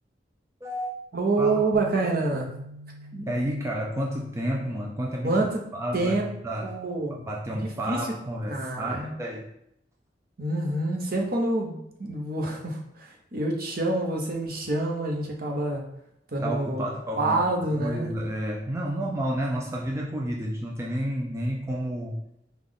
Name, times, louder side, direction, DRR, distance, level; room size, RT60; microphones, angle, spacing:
voice 1, 0.6-0.9 1.4-1.6 3.1-5.4 5.7-6.2 6.4-6.7 7.2-9.5 16.4-22.2, right 1 dB, 15° right, -1 dB, 0.4 m, -30 dB
voice 2, 1.1-2.5 5.2-5.5 5.9-6.3 6.6-7.2 7.5-7.6 7.9-8.0 8.5-9.1 10.4-15.8 16.3-16.8 17.2-18.2, right 2 dB, 55° right, 1 dB, 0.8 m, -27 dB
Bass guitar, 1.7-8.0, right 1 dB, 85° right, 0.4 m, -48 dB
5.2 x 2.4 x 3.7 m, 0.77 s
head